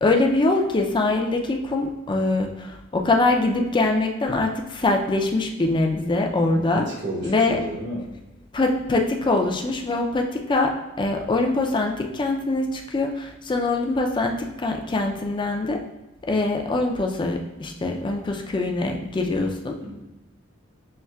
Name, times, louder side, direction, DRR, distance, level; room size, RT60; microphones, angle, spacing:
voice 1, 0.0-6.8 7.2-7.6 8.5-15.8 16.3-19.7, left 2 dB, 25° left, 3 dB, 0.4 m, -23 dB
voice 2, 6.5-8.1 19.8-20.0, equal, 60° right, -3 dB, 1.2 m, -32 dB
5.7 x 3.1 x 2.3 m, 0.99 s
head